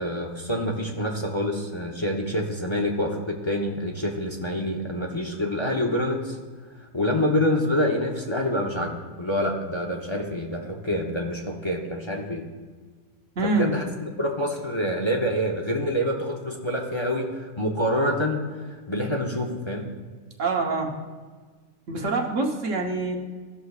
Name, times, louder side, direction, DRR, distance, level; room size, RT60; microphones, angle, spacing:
voice 1, 0.0-6.4 6.8-12.5 13.4-13.8 14.2-19.9, left 1 dB, 30° left, 1 dB, 0.7 m, -27 dB
voice 2, 13.4-13.7 20.4-20.9 21.9-23.2, right 3 dB, 85° right, 1 dB, 1.4 m, -25 dB
15.0 x 6.5 x 2.4 m, 1.4 s
omnidirectional pair, 1.2 m